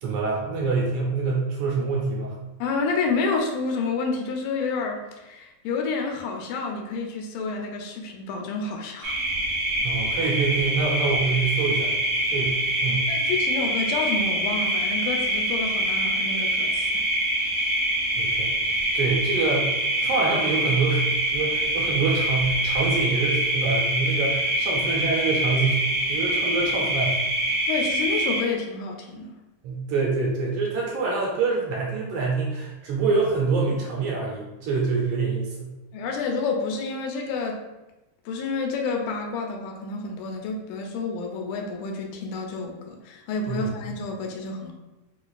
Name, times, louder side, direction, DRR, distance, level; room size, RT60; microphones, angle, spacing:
voice 1, 0.0-2.3 9.8-11.9 12.3-13.1 18.2-18.5 18.9-19.7 20.0-25.8 26.1-27.2 29.6-35.7 43.5-43.7, right 4 dB, 80° right, -3 dB, 1.9 m, -26 dB
voice 2, 2.6-9.2 13.1-17.0 27.7-29.4 35.9-37.6 38.3-44.7, left 4 dB, 90° left, 2 dB, 2.3 m, -29 dB
sound 1, 9.0-28.4, right 1 dB, 60° right, 1.5 m, -25 dB
5.4 x 2.4 x 2.3 m, 1.0 s
omnidirectional pair, 3.8 m